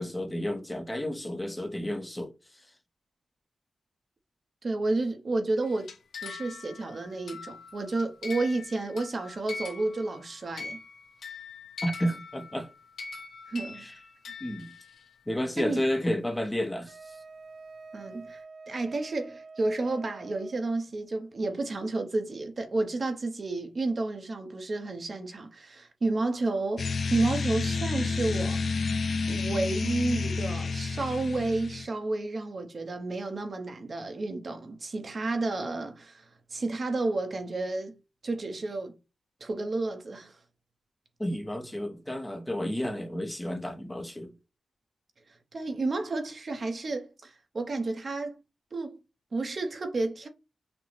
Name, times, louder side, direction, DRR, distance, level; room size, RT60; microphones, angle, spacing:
voice 1, 0.0-2.3 11.8-12.7 13.8-13.9 14.4-14.7 15.3-17.2 41.2-44.3, equal, 10° left, 0.6 m, -31 dB
voice 2, 4.6-5.9 6.2-10.8 13.5-13.8 15.6-15.8 17.9-28.8 29.3-36.2 36.5-38.0 38.2-39.0 39.4-40.3 45.5-48.4 48.7-49.0 49.3-50.3, right 2 dB, 40° right, 0.8 m, -31 dB
sound 1, 5.6-10.3 10.6-15.0, left 4 dB, 85° left, 0.9 m, -42 dB
Wind instrument woodwind instrument, 16.9-20.7, right 3 dB, 85° right, 0.7 m, -47 dB
sound 2, 26.8-31.9, left 4 dB, 55° left, 0.5 m, -30 dB
6.0 x 2.1 x 3.2 m
wide cardioid pair, 165°, 0 cm